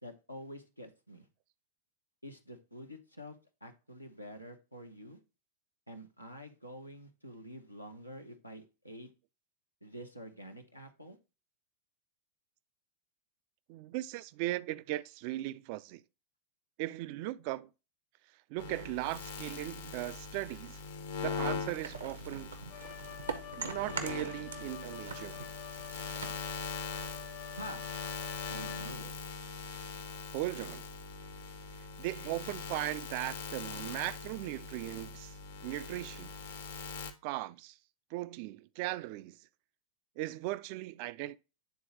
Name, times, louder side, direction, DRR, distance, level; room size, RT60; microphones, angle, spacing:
voice 1, 0.0-1.3 2.2-3.4 3.6-5.2 5.9-9.1 9.8-11.2 27.5-27.8 28.5-29.1, equal, 90° left, 0.8 m, -47 dB
voice 2, 13.7-16.0 16.8-17.7 18.5-20.8 21.2-22.6 23.6-25.5 30.3-30.9 32.0-36.3 37.2-37.8 38.1-39.5 40.2-41.4, right 17 dB, 45° right, 0.3 m, -38 dB
sound 1, 18.6-37.1, left 4 dB, 60° left, 0.8 m, -42 dB
sound 2, 21.8-24.8 25.0-27.4, right 5 dB, 70° right, 0.7 m, -43 dB
Wind instrument woodwind instrument, 22.7-29.3, left 9 dB, 35° left, 0.4 m, -48 dB
9.2 x 3.8 x 2.9 m
figure-of-eight pair, 90°, 0 cm